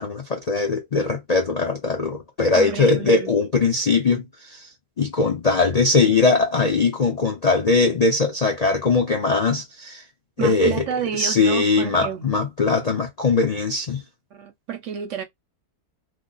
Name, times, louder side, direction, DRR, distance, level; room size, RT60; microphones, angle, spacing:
voice 1, 0.0-4.7 5.0-10.0 10.4-10.8 11.1-14.0, left 3 dB, 65° left, 0.4 m, -20 dB
voice 2, 2.5-3.3 10.4-12.3 14.3-15.2, right 8 dB, 65° right, 0.8 m, -30 dB
3.3 x 2.1 x 3.9 m
omnidirectional pair, 1.6 m